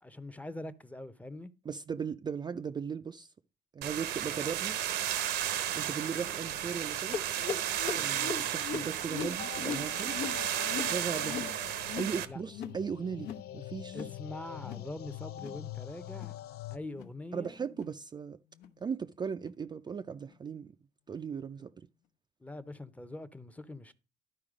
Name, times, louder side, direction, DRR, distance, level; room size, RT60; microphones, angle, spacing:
voice 1, 0.0-1.5 12.2-12.4 13.9-16.4 16.7-17.6 22.4-23.9, left 2 dB, 10° left, 0.7 m, -43 dB
voice 2, 1.7-3.3 3.7-4.8 5.7-7.2 7.9-10.1 10.8-11.5 12.0-14.0 17.3-18.4 18.8-20.7 21.1-21.9, right 6 dB, 25° right, 0.4 m, -37 dB
sound 1, 3.8-12.3, right 11 dB, 80° right, 0.9 m, -34 dB
sound 2, 7.1-12.2 12.4-12.8 13.1-13.5 13.8-14.2 14.5-14.9 15.3-15.6 16.1-16.4 16.9-17.1 17.7-17.9 18.6-18.7 19.4-19.5 20.3-20.4, left 6 dB, 85° left, 1.0 m, -40 dB
sound 3, 9.4-16.8, left 14 dB, 65° left, 0.6 m, -45 dB
12.0 x 4.4 x 5.0 m
cardioid pair, 110°, 17 cm